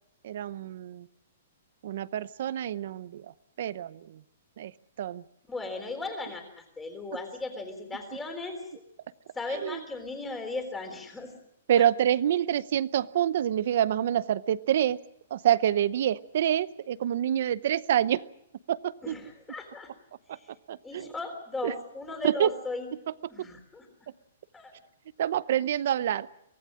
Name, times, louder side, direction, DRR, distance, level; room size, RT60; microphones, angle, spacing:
voice 1, 0.2-1.1 1.8-4.2 4.6-4.7 5.0-5.2 9.5-9.8 11.7-15.0 15.3-18.2 18.7-19.2 20.3-20.4 20.7-21.1 21.6-21.7 22.2-22.5 23.4-23.5 25.2-26.3, right 10 dB, 50° right, 18 dB, 0.8 m, -27 dB
voice 2, 5.5-8.6 9.3-11.3 19.0-19.9 20.3-20.5 20.8-22.9 23.3-23.9 24.5-24.7, left 3 dB, 10° left, 4 dB, 3.7 m, -37 dB
23.5 x 17.5 x 7.7 m, 0.79 s
hypercardioid pair, 165°, 0 cm